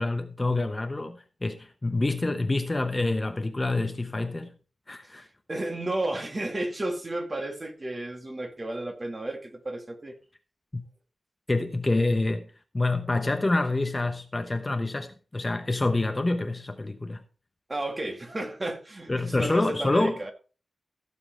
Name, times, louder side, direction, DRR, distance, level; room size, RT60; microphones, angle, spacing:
voice 1, 0.0-4.5 4.9-5.2 10.7-10.9 11.5-12.5 12.7-17.2 19.1-20.3, left 2 dB, 20° left, 0.9 m, -27 dB
voice 2, 5.0-10.1 17.7-20.3, right 1 dB, 25° right, 2.1 m, -33 dB
15.5 x 7.4 x 4.5 m
wide cardioid pair, 140°, 0 cm